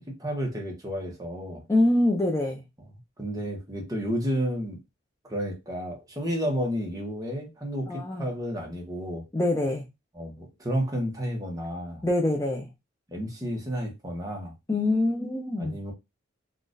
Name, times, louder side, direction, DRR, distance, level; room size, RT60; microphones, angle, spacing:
voice 1, 0.1-1.6 3.2-4.8 5.2-9.2 10.1-12.0 13.1-14.5 15.6-15.9, equal, 20° right, 1.0 m, -31 dB
voice 2, 1.7-2.6 7.9-8.3 9.3-9.8 12.0-12.7 14.7-15.8, left 1 dB, 15° left, 0.5 m, -24 dB
3.8 x 2.4 x 2.5 m
head